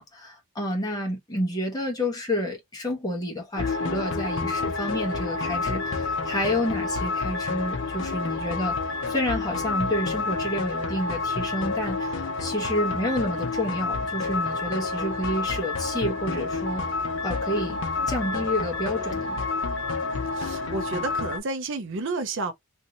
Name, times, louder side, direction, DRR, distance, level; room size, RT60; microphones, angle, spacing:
voice 1, 0.0-8.8 9.1-16.8 17.2-17.8 18.1-19.4, left 1 dB, 15° left, 0.9 m, -29 dB
sound 1, 3.6-21.4, left 3 dB, 60° left, 0.6 m, -29 dB
voice 2, 20.3-22.5, right 3 dB, 55° right, 0.6 m, -31 dB
3.0 x 2.6 x 2.6 m
head